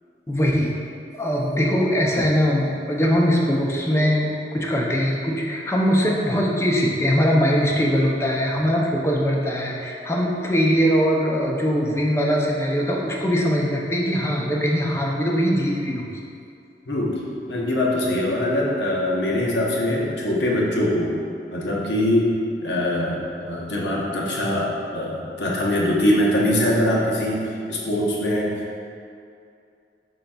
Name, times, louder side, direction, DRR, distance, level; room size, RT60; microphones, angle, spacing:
voice 1, 0.3-0.7 1.1-16.1, equal, 15° left, -2 dB, 0.4 m, -21 dB
voice 2, 16.9-17.2 17.5-21.1 21.5-22.3 22.6-28.8, left 1 dB, 80° left, -4 dB, 0.8 m, -22 dB
5.0 x 3.9 x 2.2 m, 2.5 s
head